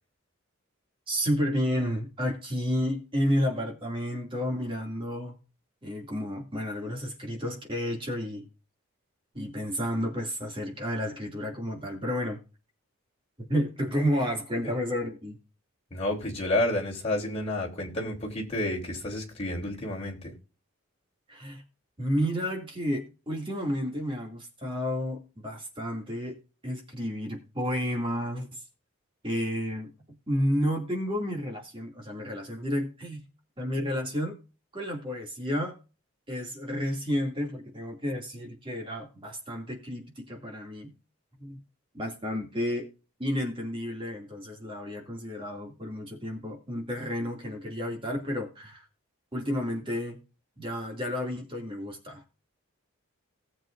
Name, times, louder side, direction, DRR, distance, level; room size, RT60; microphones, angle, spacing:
voice 1, 1.1-5.4 5.8-8.4 9.3-12.4 13.4-15.4 21.3-21.6 22.0-26.4 26.6-28.5 29.2-29.9 30.3-33.2 33.6-34.4 34.7-35.8 36.3-40.9 41.4-41.6 41.9-42.9 43.2-48.8 49.3-50.2 50.6-52.2, equal, 25° right, 2.5 m, -31 dB
voice 2, 15.9-20.3, left 1 dB, 30° left, 3.3 m, -30 dB
18.5 x 7.6 x 2.6 m
head